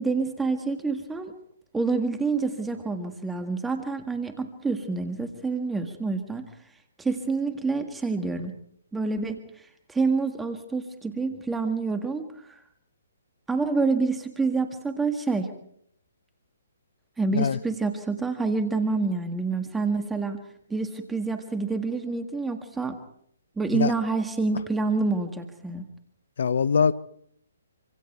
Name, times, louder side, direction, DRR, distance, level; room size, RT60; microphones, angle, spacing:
voice 1, 0.0-1.3 1.7-6.5 7.0-8.5 8.9-12.6 13.5-15.5 17.2-20.4 20.7-23.0 23.6-25.9, right 4 dB, 5° right, 1.8 m, -27 dB
voice 2, 26.4-26.9, left 6 dB, 65° left, 1.0 m, -22 dB
26.0 x 26.0 x 4.5 m
hypercardioid pair, 135°, 0 cm